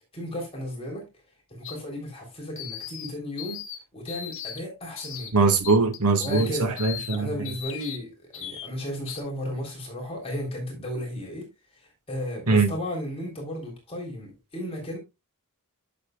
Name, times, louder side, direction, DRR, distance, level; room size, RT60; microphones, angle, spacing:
voice 1, 0.1-1.1 1.5-3.6 3.9-5.5 6.2-6.8 7.1-15.0, left 1 dB, 25° left, 3.5 m, -34 dB
sound 1, 1.6-1.8 2.6-3.1 3.4-3.8 4.1-4.6 5.0-5.3 5.6-6.5 6.8-7.2 7.5-8.0 8.3-8.7 9.1-9.2, left 9 dB, 60° left, 1.7 m, -37 dB
voice 2, 5.3-7.3 12.5-12.7, right 4 dB, 90° right, 1.7 m, -21 dB
11.0 x 7.0 x 2.3 m
head